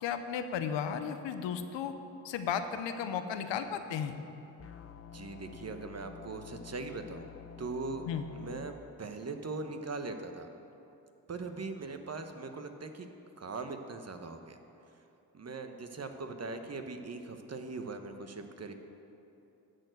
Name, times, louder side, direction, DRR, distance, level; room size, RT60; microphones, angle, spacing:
voice 1, 0.0-2.0 2.2-4.1 8.1-8.3, left 7 dB, 80° left, 9 dB, 0.8 m, -34 dB
sound 1, 4.6-8.7, left 8 dB, 35° left, 0.5 m, -49 dB
voice 2, 5.1-7.3 7.6-8.1 8.3-10.5 11.3-13.1 13.4-14.6 15.3-18.7, right 3 dB, 35° right, 6 dB, 1.0 m, -40 dB
12.5 x 4.4 x 7.9 m, 2.8 s
supercardioid pair, 55°, 43 cm